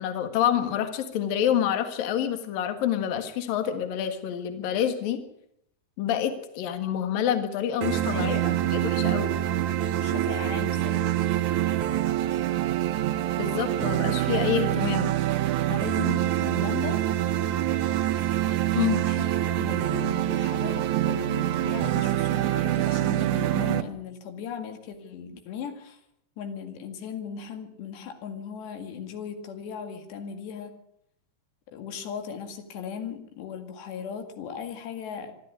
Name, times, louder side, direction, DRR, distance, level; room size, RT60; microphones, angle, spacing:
voice 1, 0.0-5.2 6.0-8.3 8.7-9.4 13.4-15.1 18.7-19.0, left 9 dB, 60° left, 8 dB, 3.3 m, -27 dB
sound 1, 7.8-23.8, right 13 dB, 80° right, 1.7 m, -25 dB
voice 2, 8.1-8.6 10.0-11.2 15.7-17.1 17.4-17.5 18.5-18.7 19.0-26.0 26.4-30.8 31.7-35.3, left 7 dB, 85° left, 6 dB, 4.2 m, -37 dB
24.5 x 12.5 x 9.6 m, 0.75 s
omnidirectional pair, 4.8 m